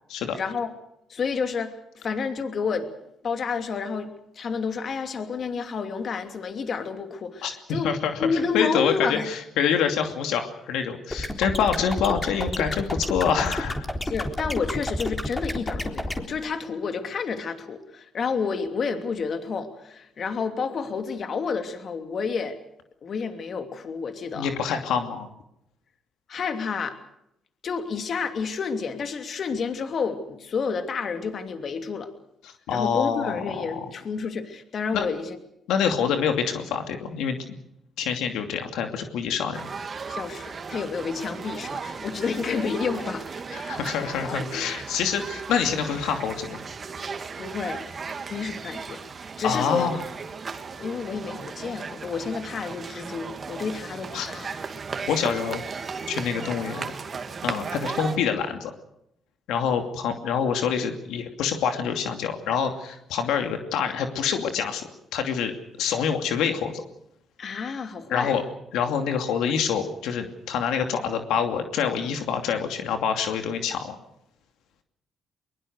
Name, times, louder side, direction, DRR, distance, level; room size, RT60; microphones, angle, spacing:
voice 1, 0.4-0.7 1.1-2.9 3.2-4.1 4.4-7.9 8.2-9.3 14.0-22.6 23.0-24.5 26.3-27.0 27.6-32.1 32.7-35.4 35.9-36.1 40.1-43.2 43.6-44.6 47.4-47.8 48.3-49.0 49.4-50.0 50.8-54.5 67.4-68.4, left 5 dB, 50° left, 7 dB, 2.8 m, -30 dB
voice 2, 7.4-13.7 24.3-25.3 32.7-33.9 34.9-35.1 35.7-37.4 38.0-39.7 43.5-46.6 49.4-50.0 54.1-54.3 55.1-55.6 56.1-56.9 57.4-58.7 59.5-65.5 65.8-66.8 68.1-68.4 68.7-74.0, left 7 dB, 90° left, 5 dB, 2.6 m, -26 dB
sound 1, 11.1-16.2, left 1 dB, 15° left, 3.7 m, -30 dB
sound 2, 39.5-58.2, right 5 dB, 40° right, 2.3 m, -36 dB
23.0 x 22.5 x 6.6 m, 0.78 s
cardioid pair, 90°, 0 cm